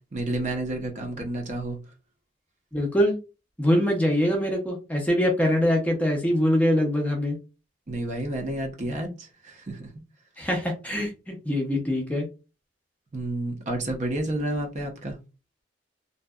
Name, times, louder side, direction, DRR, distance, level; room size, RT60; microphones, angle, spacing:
voice 1, 0.1-1.8 7.9-9.9 13.1-15.2, right 1 dB, 40° right, 2 dB, 0.6 m, -30 dB
voice 2, 2.7-3.2 3.6-7.4 10.4-12.3, equal, 10° left, 1 dB, 0.5 m, -23 dB
2.7 x 2.2 x 2.2 m, 0.30 s
head